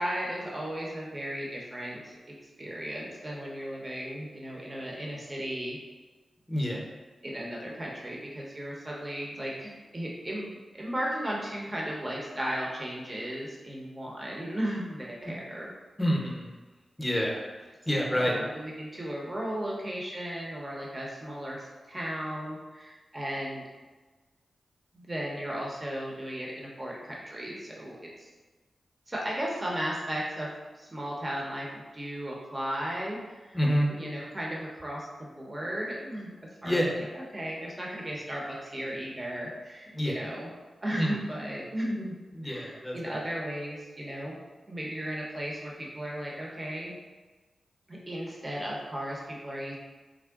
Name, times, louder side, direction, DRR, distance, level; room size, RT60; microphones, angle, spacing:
voice 1, 0.0-2.2 2.6-5.8 7.2-15.7 17.9-23.6 24.9-28.3 29.1-30.5 30.8-33.2 33.4-33.6 33.9-36.3 36.6-40.5 40.8-42.1 42.4-44.4 44.7-46.9 47.9-49.8, equal, 30° right, -3 dB, 0.8 m, -35 dB
voice 2, 6.5-6.8 16.0-16.5 17.0-17.4 17.9-18.5 33.5-33.9 36.6-37.0 39.9-40.2 41.0-41.1 42.3-43.2, equal, 10° left, -2 dB, 0.8 m, -27 dB
3.5 x 2.1 x 3.5 m, 1.3 s
cardioid pair, 55°, 0 cm